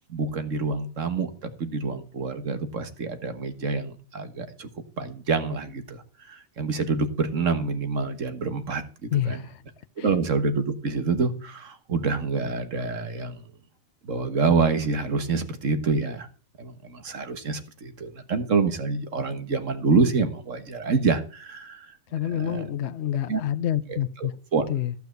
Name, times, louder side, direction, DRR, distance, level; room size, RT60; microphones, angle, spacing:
voice 1, 0.1-4.7 5.0-6.0 6.3-8.8 9.3-9.4 10.0-13.4 14.0-16.3 16.6-21.8 22.3-22.7 23.3-23.4 23.9-24.8, right 4 dB, 70° right, 1.8 m, -27 dB
voice 2, 9.1-9.6 10.0-10.1 22.1-24.3 24.7-24.9, left 11 dB, 60° left, 0.9 m, -28 dB
15.0 x 5.9 x 7.9 m
omnidirectional pair, 1.4 m